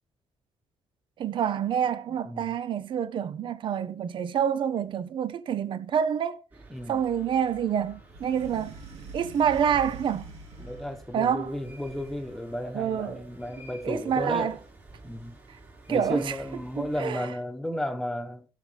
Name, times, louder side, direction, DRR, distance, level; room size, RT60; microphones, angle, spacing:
voice 1, 1.2-6.4 6.9-8.7 9.1-10.3 11.1-11.5 12.7-13.2 13.8-14.5 15.9-16.3 16.8-17.3, right 8 dB, 55° right, 0.7 m, -27 dB
voice 2, 2.1-2.6 3.3-3.5 6.7-7.1 10.6-14.6 15.0-15.4 15.9-18.5, left 1 dB, ahead, 1.2 m, -34 dB
sound 1, 6.5-17.1, right 2 dB, 20° right, 4.9 m, -51 dB
sound 2, 8.1-11.1 11.7-12.6, right 3 dB, 80° right, 2.5 m, -45 dB
16.5 x 6.5 x 3.4 m
cardioid pair, 130°, 10 cm